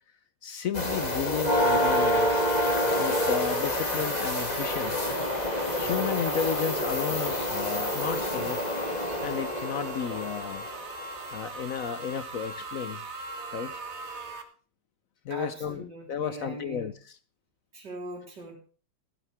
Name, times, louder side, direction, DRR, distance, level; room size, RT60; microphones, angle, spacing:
voice 1, 0.4-2.5 3.0-5.0 5.7-8.7 9.2-10.7 11.3-13.0 13.5-13.8 15.2-16.9, left 8 dB, 60° left, 12 dB, 1.0 m, -33 dB
sound 1, 0.7-11.4 13.4-13.5 14.0-14.2, left 1 dB, 25° left, 2.3 m, -28 dB
sound 2, 3.1-14.4, right 2 dB, 40° right, 1.7 m, -41 dB
voice 2, 15.3-16.9 17.7-18.6, right 1 dB, 75° right, -2 dB, 4.7 m, -40 dB
16.0 x 12.5 x 3.5 m, 0.40 s
omnidirectional pair, 1.9 m